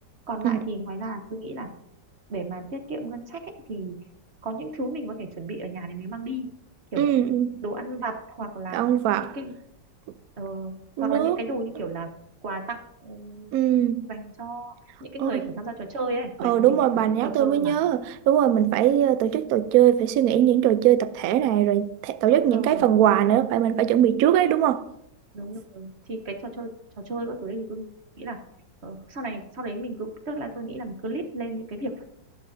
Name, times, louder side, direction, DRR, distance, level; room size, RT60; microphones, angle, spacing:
voice 1, 0.3-1.7 2.3-3.9 4.4-6.5 6.9-7.1 7.6-8.8 9.2-9.5 10.4-12.1 12.4-13.6 14.1-14.7 15.0-16.8 17.2-17.8 22.3-22.9 25.3-26.7 27.0-27.9 28.2-28.4 28.8-32.0, right 2 dB, 45° right, 1.0 m, -34 dB
voice 2, 7.0-7.6 8.7-9.3 11.0-11.4 13.5-14.1 15.2-15.5 16.4-24.8, right 11 dB, 70° right, 0.8 m, -21 dB
13.0 x 11.5 x 2.6 m
omnidirectional pair, 2.0 m